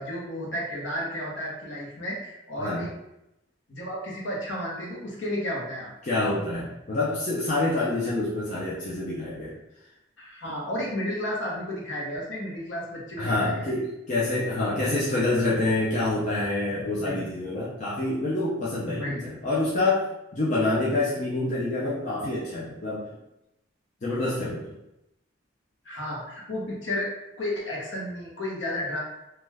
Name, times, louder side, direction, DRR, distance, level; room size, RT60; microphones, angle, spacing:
voice 1, 0.0-2.9 3.7-5.9 10.2-13.7 17.0-17.2 18.9-19.3 25.8-27.1 27.4-29.0, left 1 dB, 70° left, -4 dB, 0.9 m, -32 dB
voice 2, 6.0-9.6 13.2-23.0 24.0-24.7, left 2 dB, 35° left, -7 dB, 0.4 m, -27 dB
2.4 x 2.2 x 3.2 m, 0.87 s
head